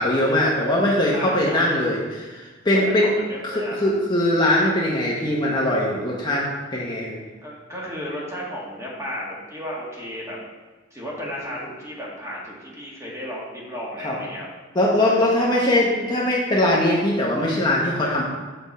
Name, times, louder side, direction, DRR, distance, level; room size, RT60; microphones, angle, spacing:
voice 1, 0.0-3.1 3.4-7.2 14.0-14.2 14.7-18.2, left 1 dB, 25° left, -4 dB, 1.0 m, -21 dB
voice 2, 1.1-1.7 3.0-3.9 7.4-10.4 10.9-14.5 15.0-15.5, equal, 15° right, -4 dB, 1.8 m, -34 dB
6.9 x 5.9 x 4.2 m, 1.3 s
head